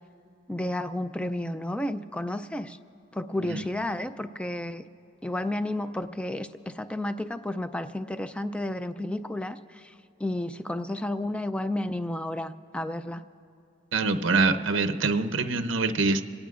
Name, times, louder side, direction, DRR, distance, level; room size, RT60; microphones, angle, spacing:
voice 1, 0.5-2.8 3.1-4.8 5.2-9.9 10.2-13.2, left 1 dB, 5° left, 11 dB, 0.3 m, -32 dB
voice 2, 13.9-16.2, right 3 dB, 65° right, 8 dB, 0.7 m, -25 dB
26.0 x 18.5 x 2.5 m, 2.8 s
head